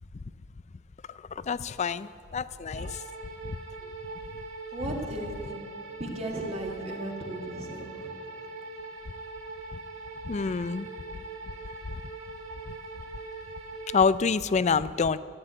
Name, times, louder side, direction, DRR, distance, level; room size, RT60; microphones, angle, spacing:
voice 1, 1.4-3.0 3.4-3.6 10.2-10.9 12.7-12.8 13.9-15.2, left 5 dB, 35° left, 16 dB, 0.4 m, -27 dB
sound 1, 2.7-14.0, right 3 dB, 85° right, 1.8 m, -42 dB
voice 2, 4.7-5.7 6.0-8.1, right 1 dB, 30° right, 1 dB, 1.9 m, -36 dB
13.5 x 8.8 x 9.0 m, 2.3 s
head